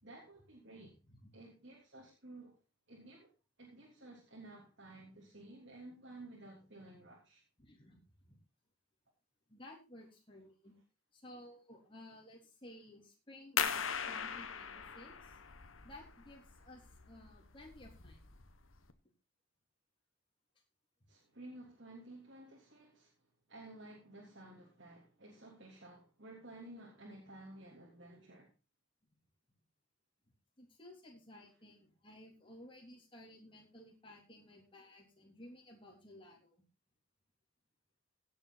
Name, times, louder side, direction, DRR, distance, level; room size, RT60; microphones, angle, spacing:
voice 1, 0.0-1.0 1.3-2.6 2.9-3.3 3.6-7.4 21.1-23.1 23.5-28.5, right 2 dB, 60° right, 3.4 m, -54 dB
voice 2, 7.6-8.4 9.5-10.7 11.1-15.4 15.8-18.2 30.6-36.6, left 1 dB, 25° left, 3.6 m, -56 dB
sound 1, 13.6-18.9, left 7 dB, 80° left, 1.3 m, -40 dB
16.5 x 7.8 x 4.1 m
head